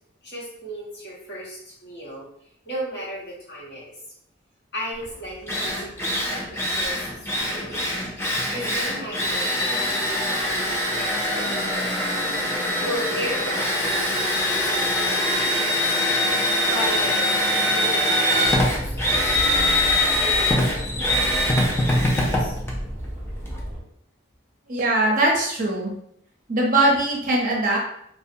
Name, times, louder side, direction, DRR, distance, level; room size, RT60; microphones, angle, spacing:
voice 1, 0.2-2.3 2.6-4.0 4.7-8.1 8.5-10.5 10.9-11.7 12.8-14.7 15.0-16.0 16.6-17.3 17.7-18.7 19.0-19.8 20.1-22.6, equal, 55° left, -6 dB, 1.0 m, -35 dB
Drill, 5.0-5.1 5.5-23.6, left 1 dB, 10° left, 0.3 m, -23 dB
sound 1, 18.4-23.8, equal, 10° right, 1.1 m, -33 dB
voice 2, 24.7-25.9 26.5-27.8, right 1 dB, 45° right, -2 dB, 0.6 m, -21 dB
2.6 x 2.1 x 2.5 m, 0.72 s
head